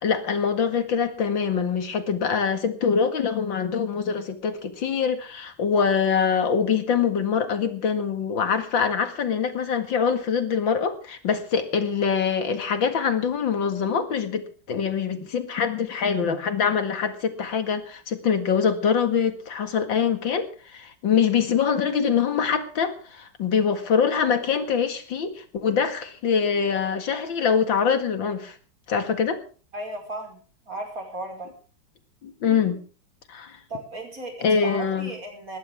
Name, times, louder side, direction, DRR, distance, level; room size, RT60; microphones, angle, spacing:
voice 1, 0.0-28.5 28.9-29.4 32.2-32.8 33.3-33.6 34.4-35.1, left 6 dB, 65° left, 8 dB, 2.7 m, -24 dB
voice 2, 29.7-31.5 33.7-35.6, right 1 dB, 40° right, 2 dB, 5.7 m, -36 dB
20.0 x 16.0 x 3.6 m, 0.39 s
omnidirectional pair, 2.2 m